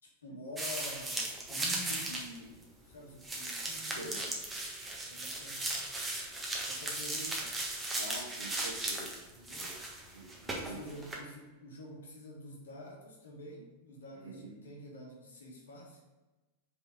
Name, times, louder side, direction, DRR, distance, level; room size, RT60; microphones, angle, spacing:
voice 1, 0.0-4.4 4.6-4.7 5.0-5.7 6.7-7.6 9.3-9.7 10.5-16.0, left 1 dB, 65° left, -2 dB, 1.7 m, -48 dB
sound 1, 0.6-2.4 2.6-2.7 3.2-11.2, right 2 dB, 15° right, 1.3 m, -37 dB
voice 2, 7.9-9.2 9.6-9.7 10.1-10.9 14.1-14.6, right 1 dB, 75° right, -2 dB, 1.7 m, -46 dB
5.3 x 4.8 x 5.1 m, 1.1 s
figure-of-eight pair, 90°, 0 cm